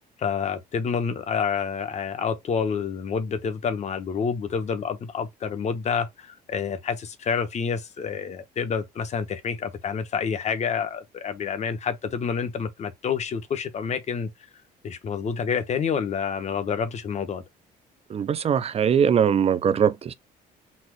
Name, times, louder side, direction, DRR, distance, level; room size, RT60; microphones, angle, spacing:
voice 1, 0.2-14.3 14.8-17.4, left 6 dB, 40° left, 1.0 m, -28 dB
voice 2, 18.1-20.1, right 8 dB, 35° right, 0.5 m, -21 dB
4.3 x 2.5 x 4.6 m
cardioid pair, 110°, 17 cm